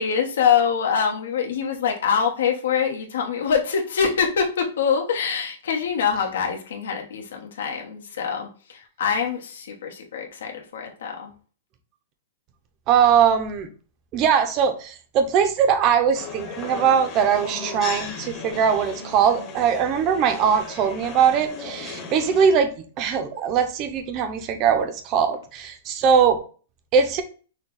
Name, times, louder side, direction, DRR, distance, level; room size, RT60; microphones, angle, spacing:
voice 1, 0.0-11.3, left 7 dB, 85° left, 1 dB, 1.1 m, -24 dB
voice 2, 12.9-13.7 14.1-22.7 23.0-26.4 26.9-27.2, right 7 dB, 25° right, 8 dB, 0.5 m, -21 dB
sound 1, 16.1-22.5, left 4 dB, 20° left, 0.8 m, -36 dB
6.2 x 2.2 x 3.8 m, 0.39 s
supercardioid pair, 180°, 0 cm